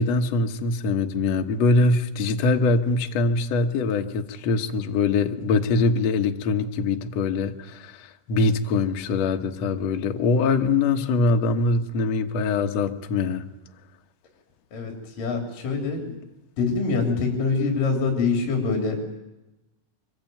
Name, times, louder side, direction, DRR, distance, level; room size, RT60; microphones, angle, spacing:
voice 1, 0.0-13.5, left 3 dB, 75° left, 1.5 m, -23 dB
voice 2, 14.7-16.2 16.6-19.2, left 4 dB, 50° left, 4.7 m, -25 dB
24.5 x 23.5 x 9.3 m
omnidirectional pair, 5.1 m